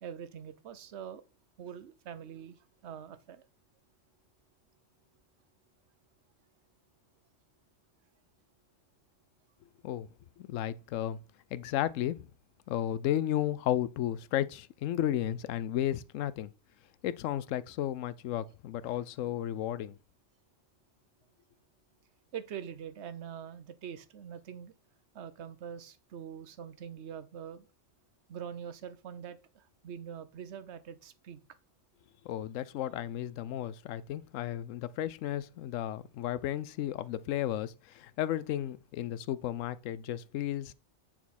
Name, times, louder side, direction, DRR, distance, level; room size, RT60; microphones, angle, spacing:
voice 1, 0.0-1.2 1.6-2.6 2.8-3.4 22.3-24.7 25.1-27.7 28.3-31.4, right 8 dB, 65° right, 1.1 m, -44 dB
voice 2, 10.4-11.2 11.5-12.3 12.7-16.5 17.0-19.9 32.2-40.7, left 12 dB, 85° left, 0.9 m, -33 dB
9.3 x 4.4 x 4.2 m
omnidirectional pair, 1.3 m